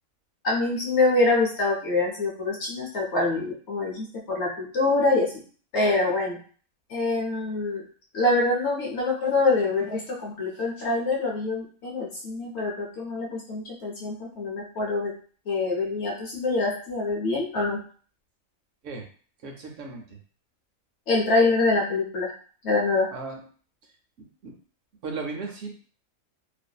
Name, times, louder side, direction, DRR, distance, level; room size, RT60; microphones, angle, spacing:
voice 1, 0.4-5.4 5.7-6.4 6.9-7.8 8.1-15.1 15.5-17.8 21.1-22.3 22.6-23.1, left 3 dB, 60° left, -3 dB, 0.9 m, -25 dB
voice 2, 19.4-20.2 23.1-23.4 24.2-24.6 25.0-25.7, right 4 dB, 70° right, 2 dB, 0.9 m, -36 dB
2.5 x 2.5 x 2.2 m, 0.43 s
omnidirectional pair, 1.5 m